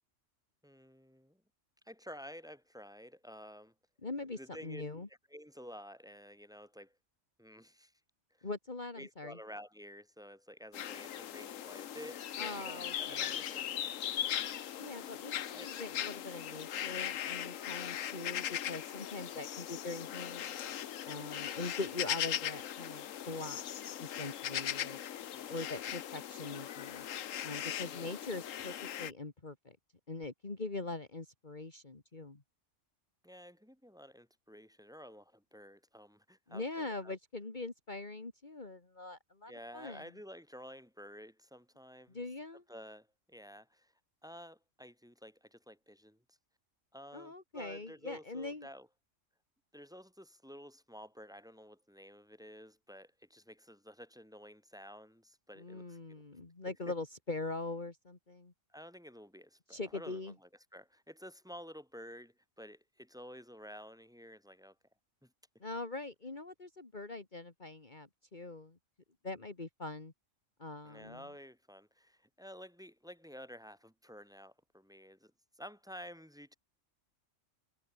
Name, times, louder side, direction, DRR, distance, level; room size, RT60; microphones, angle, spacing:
voice 1, 0.6-1.4 1.8-3.7 4.3-4.8 5.3-6.9 7.4-7.9 8.4-8.5 9.0-14.4 15.5-15.7 25.3-25.7 27.8-28.1 33.2-37.2 39.5-42.2 42.7-43.9 44.2-46.4 46.9-48.9 49.7-56.2 58.7-64.7 65.2-65.3 70.8-75.3 75.6-76.6, equal, 5° right, 4.8 m, -52 dB
voice 2, 4.0-5.1 8.4-9.4 12.4-13.4 14.8-20.6 21.0-23.6 24.0-25.0 25.5-27.0 27.4-29.8 30.1-32.4 36.5-40.0 42.1-42.6 47.1-48.7 55.6-58.5 59.7-60.3 65.6-68.8 69.2-70.1 70.6-71.3, left 3 dB, 35° left, 2.4 m, -42 dB
sound 1, 10.7-29.1, left 10 dB, 85° left, 1.2 m, -39 dB
omnidirectional pair, 1.3 m